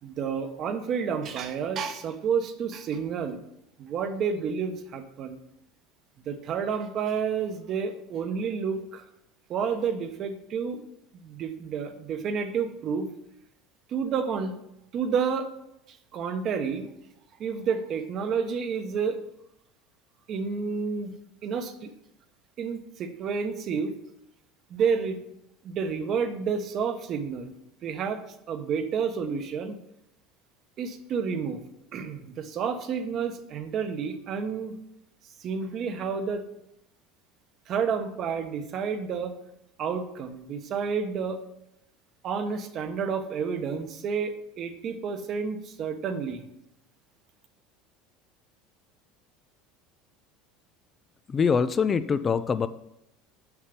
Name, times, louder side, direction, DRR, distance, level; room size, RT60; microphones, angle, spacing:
voice 1, 0.0-3.4 3.8-5.4 6.2-9.0 9.5-10.8 11.1-13.1 13.9-14.5 14.9-15.5 15.9-16.9 17.4-19.2 20.3-21.1 21.4-21.9 22.6-23.9 24.7-25.2 25.6-27.5 27.8-28.2 28.5-29.8 30.8-31.6 31.9-34.8 35.4-36.4 37.7-39.4 39.8-41.4 42.2-46.4, right 6 dB, 50° right, 7 dB, 1.1 m, -30 dB
voice 2, 51.3-52.7, left 6 dB, 30° left, 12 dB, 0.4 m, -24 dB
7.0 x 5.6 x 5.2 m, 0.83 s
supercardioid pair, 100°, 0 cm